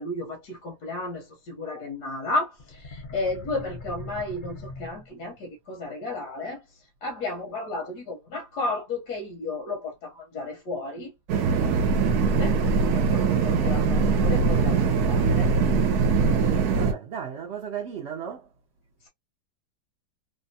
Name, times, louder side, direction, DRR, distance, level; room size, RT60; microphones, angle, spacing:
voice 1, 0.0-11.1 11.6-11.8 12.2-12.6 12.9-15.6 19.0-19.1, left 2 dB, 80° left, 1.4 m, -33 dB
sound 1, 2.6-5.4, left 2 dB, 40° left, 0.7 m, -41 dB
sound 2, 11.3-16.9, right 4 dB, 70° right, 1.1 m, -22 dB
voice 2, 16.8-18.5, right 8 dB, 55° right, 0.8 m, -35 dB
3.3 x 2.2 x 2.7 m
omnidirectional pair, 1.7 m